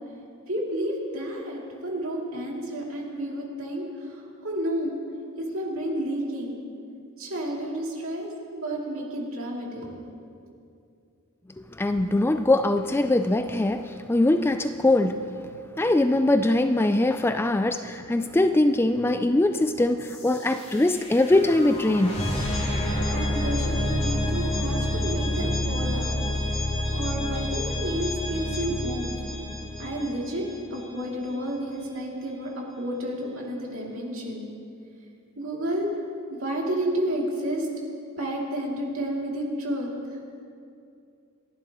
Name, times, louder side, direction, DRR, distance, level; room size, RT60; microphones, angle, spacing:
voice 1, 0.5-5.0 5.4-6.6 7.2-9.9 23.1-26.2 26.5-26.7 26.9-29.1 29.8-30.4 30.7-34.5 35.4-35.9 36.3-37.7 38.2-39.9, right 1 dB, 65° right, -3 dB, 2.8 m, -31 dB
voice 2, 11.8-15.2 15.8-22.2, left 2 dB, 10° left, 8 dB, 0.3 m, -22 dB
sound 1, 20.0-30.8, left 1 dB, 25° left, 2.7 m, -28 dB
28.5 x 11.5 x 3.0 m, 2.5 s
head